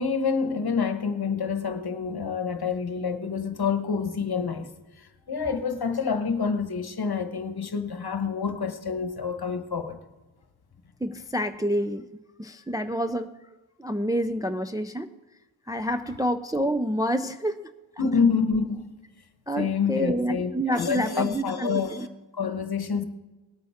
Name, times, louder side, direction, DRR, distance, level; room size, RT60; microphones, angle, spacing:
voice 1, 0.0-4.7 5.0-10.0 18.0-18.9 19.6-22.1 22.3-23.0, left 5 dB, 50° left, 1.1 m, -27 dB
voice 2, 11.0-12.1 12.4-13.3 13.8-15.1 15.7-17.7 19.5-22.1, equal, 10° right, 0.4 m, -28 dB
19.5 x 8.6 x 3.6 m
cardioid pair, 60°, 47 cm